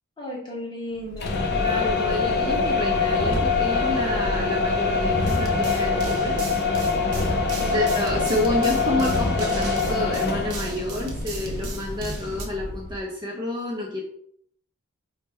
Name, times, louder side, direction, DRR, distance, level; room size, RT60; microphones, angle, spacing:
voice 1, 0.2-1.4 7.5-7.8, left 1 dB, 20° left, -5 dB, 1.2 m, -35 dB
sound 1, 1.1-13.0, left 4 dB, 45° left, 0.5 m, -24 dB
voice 2, 1.5-6.4 7.7-14.0, left 1 dB, 20° right, -2 dB, 0.5 m, -29 dB
sound 2, 5.2-12.5, right 3 dB, 80° right, 0.7 m, -37 dB
3.4 x 2.1 x 4.3 m, 0.67 s
head